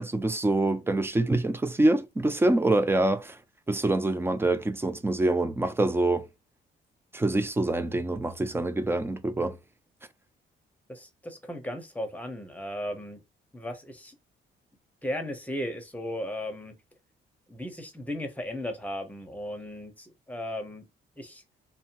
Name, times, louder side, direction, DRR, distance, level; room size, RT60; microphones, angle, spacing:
voice 1, 0.0-3.4 3.7-6.3 7.1-9.6, right 2 dB, 10° right, 0.4 m, -25 dB
voice 2, 10.9-13.2 13.5-14.1 15.0-16.7 17.5-20.8 21.2-21.4, left 1 dB, 5° left, 0.8 m, -36 dB
2.6 x 2.0 x 2.9 m
cardioid pair, 90°, 20 cm